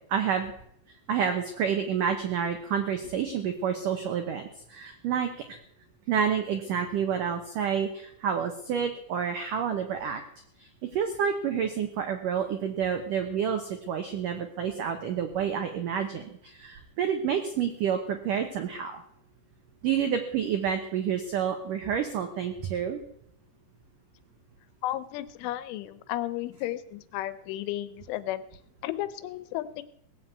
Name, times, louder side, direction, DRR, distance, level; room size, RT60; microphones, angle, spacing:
voice 1, 0.1-0.5 1.1-5.6 6.1-10.2 10.6-19.0 19.8-23.0, right 7 dB, 85° right, 6 dB, 1.8 m, -29 dB
voice 2, 24.8-28.4 28.8-29.8, left 14 dB, 90° left, 14 dB, 3.3 m, -33 dB
18.5 x 7.7 x 8.2 m, 0.73 s
omnidirectional pair, 5.4 m